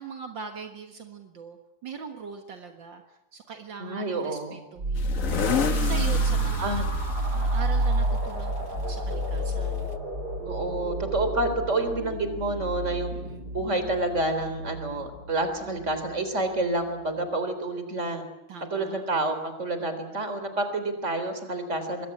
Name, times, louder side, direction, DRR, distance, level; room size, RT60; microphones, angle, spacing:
voice 1, 0.0-3.0 3.3-6.9 7.3-9.9 13.1-13.5 18.5-19.0, right 6 dB, 70° right, 5 dB, 2.3 m, -41 dB
voice 2, 3.8-4.6 6.6-6.9 10.5-13.1 13.5-18.2 18.7-22.1, right 2 dB, 35° right, 9 dB, 4.0 m, -28 dB
sound 1, 4.8-16.1, right 2 dB, 55° right, 4.9 m, -29 dB
sound 2, 5.0-10.0, left 6 dB, 45° left, 1.6 m, -32 dB
25.0 x 22.0 x 8.6 m, 0.91 s
omnidirectional pair, 2.1 m